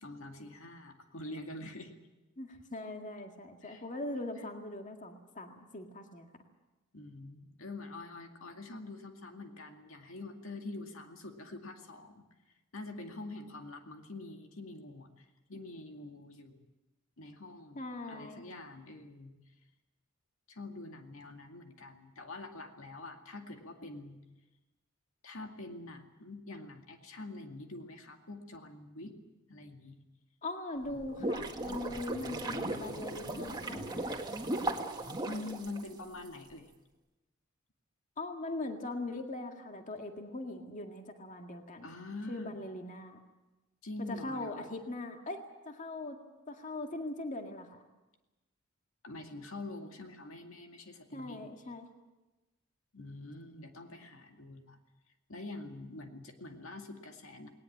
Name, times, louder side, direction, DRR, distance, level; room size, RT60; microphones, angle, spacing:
voice 1, 0.0-1.9 3.6-3.8 6.9-12.2 12.7-16.7 17.2-17.8 18.1-19.4 20.5-24.2 25.2-29.2 29.5-30.0 35.2-36.7 41.8-42.6 43.8-44.7 49.0-51.5 52.9-54.8 55.3-57.5, left 2 dB, 75° left, 4 dB, 2.2 m, -45 dB
voice 2, 2.4-6.3 17.8-18.4 30.4-34.2 38.2-41.9 42.3-43.2 44.1-45.4 45.7-46.2 46.5-47.8 51.1-51.9, left 2 dB, 40° left, 4 dB, 2.0 m, -41 dB
sound 1, 30.8-36.3, right 1 dB, 20° right, 1.8 m, -37 dB
19.5 x 19.0 x 8.6 m, 1.1 s
head